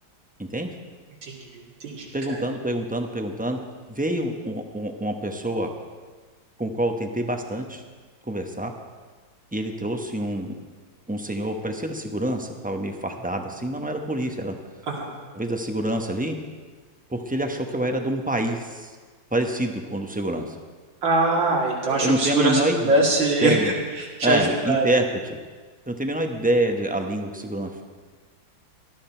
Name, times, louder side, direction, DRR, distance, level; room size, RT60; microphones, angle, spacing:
voice 1, 0.4-0.7 2.1-3.6 3.9-5.7 6.6-7.8 8.3-8.7 9.5-10.5 11.1-14.5 15.3-16.4 17.1-18.9 19.3-20.6 21.9-22.9 23.4-23.7 24.2-25.4 25.9-27.7, right 1 dB, 5° right, 4 dB, 0.6 m, -26 dB
voice 2, 1.2-2.4 14.9-15.1 21.0-24.9, right 2 dB, 75° right, -2 dB, 3.3 m, -23 dB
18.0 x 13.0 x 4.5 m, 1.4 s
omnidirectional pair, 2.1 m